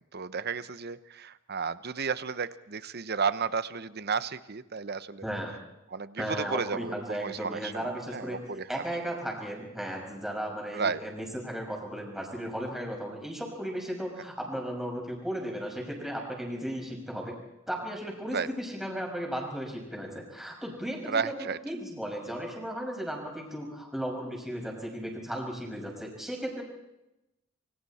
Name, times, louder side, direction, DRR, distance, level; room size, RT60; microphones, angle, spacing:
voice 1, 0.1-5.3 5.9-8.7 10.7-11.0 14.2-14.3 18.3-18.5 21.1-21.6, right 5 dB, 50° right, 14 dB, 0.9 m, -33 dB
voice 2, 5.2-5.6 6.2-8.4 8.7-17.3 17.7-26.6, equal, ahead, 0 dB, 6.1 m, -35 dB
28.0 x 24.5 x 4.3 m, 0.91 s
head